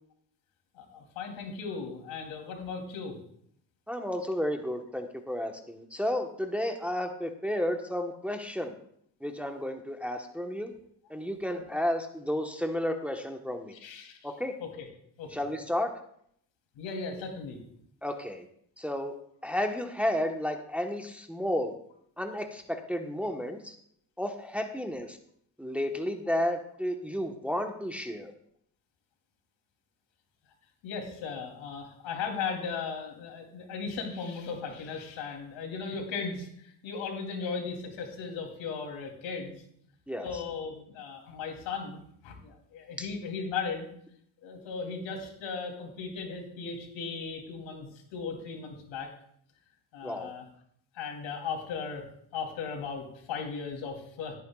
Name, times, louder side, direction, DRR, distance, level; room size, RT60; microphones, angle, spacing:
voice 1, 0.7-3.2 13.7-14.3 14.6-14.9 15.2-15.3 16.7-17.6 30.8-39.6 40.2-43.9 44.4-49.1 49.9-50.4 50.9-52.0 52.3-54.4, left 5 dB, 75° left, 1 dB, 3.3 m, -37 dB
voice 2, 3.9-8.8 9.2-10.7 11.1-13.7 14.2-14.5 15.3-15.9 18.0-18.4 18.8-19.1 19.4-21.7 22.2-23.7 24.2-25.2 25.6-28.3 40.1-40.3 43.0-43.1 50.0-50.3, left 1 dB, 5° right, 4 dB, 1.2 m, -32 dB
17.5 x 9.0 x 2.4 m, 0.67 s
supercardioid pair, 75°, 47 cm